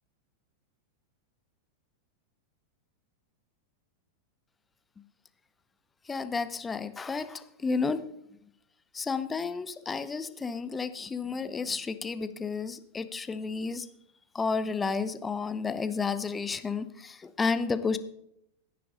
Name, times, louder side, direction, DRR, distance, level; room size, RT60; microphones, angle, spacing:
voice 1, 6.1-8.0 8.9-13.9 14.3-18.0, left 4 dB, 15° left, 13 dB, 0.9 m, -31 dB
15.0 x 10.5 x 3.9 m, 0.74 s
figure-of-eight pair, 90°, 0 cm